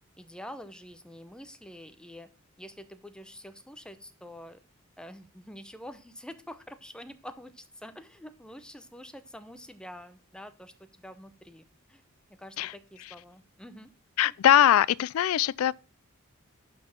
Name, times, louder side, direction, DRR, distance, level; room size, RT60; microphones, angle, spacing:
voice 1, 0.2-2.3 2.6-4.6 5.0-12.0 12.3-13.9 14.2-14.3, equal, 5° left, 0.7 m, -46 dB
voice 2, 14.2-15.7, left 11 dB, 75° left, 0.3 m, -21 dB
11.0 x 4.4 x 5.7 m
head